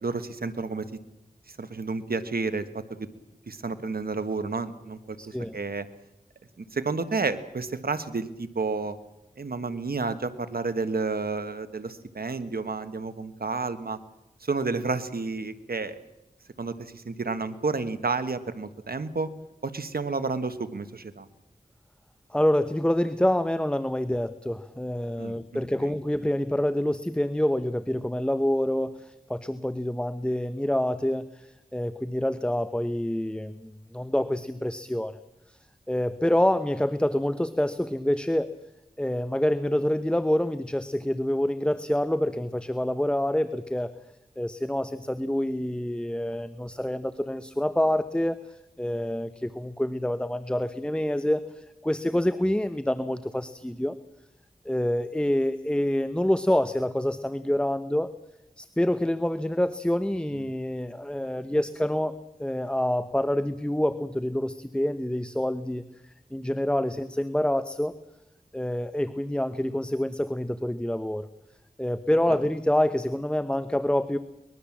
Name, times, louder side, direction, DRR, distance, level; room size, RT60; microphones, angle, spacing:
voice 1, 0.0-0.9 1.6-2.8 3.5-5.9 6.7-9.0 9.4-14.0 14.4-16.0 16.6-19.3 19.6-21.3 25.2-26.0, right 4 dB, 80° right, 10 dB, 1.5 m, -31 dB
voice 2, 5.2-5.6 22.3-35.2 35.5-35.6 35.9-38.5 39.0-43.9 44.4-48.4 48.8-54.0 54.6-58.1 58.6-62.1 62.4-65.9 66.3-68.0 68.5-71.3 71.8-74.2, left 1 dB, 5° left, 12 dB, 1.0 m, -27 dB
23.5 x 21.0 x 7.4 m, 0.91 s
wide cardioid pair, 55°, 15 cm